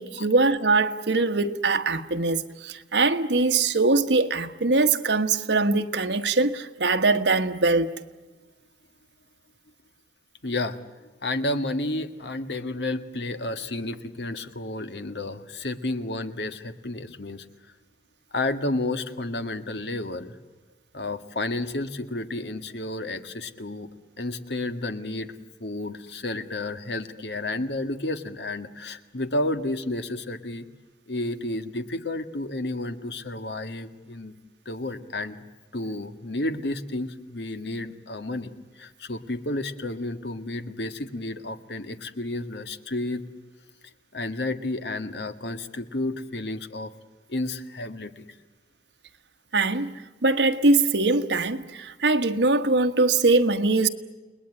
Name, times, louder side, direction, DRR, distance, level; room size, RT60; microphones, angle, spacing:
voice 1, 0.0-7.9 49.5-53.9, right 3 dB, 90° right, 1.4 m, -22 dB
voice 2, 10.4-10.8 11.2-17.5 18.3-20.4 20.9-23.9 24.2-25.3 25.6-30.7 31.1-34.3 34.7-35.4 35.7-43.2 44.1-46.9 47.3-48.3, left 2 dB, 75° left, 1.7 m, -31 dB
30.0 x 20.5 x 9.8 m
head